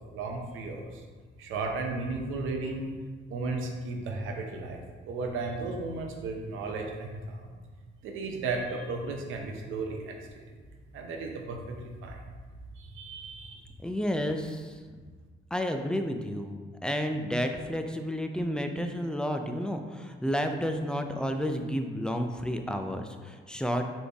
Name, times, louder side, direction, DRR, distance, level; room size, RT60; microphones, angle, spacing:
voice 1, 0.1-1.0 1.4-2.9 3.3-7.5 8.0-10.6 10.9-12.2 12.8-13.7, right 3 dB, 85° right, 2 dB, 0.7 m, -35 dB
voice 2, 13.8-14.8 15.5-23.8, equal, 5° left, 5 dB, 0.4 m, -31 dB
4.2 x 3.3 x 3.4 m, 1.5 s
cardioid pair, 90°, 20 cm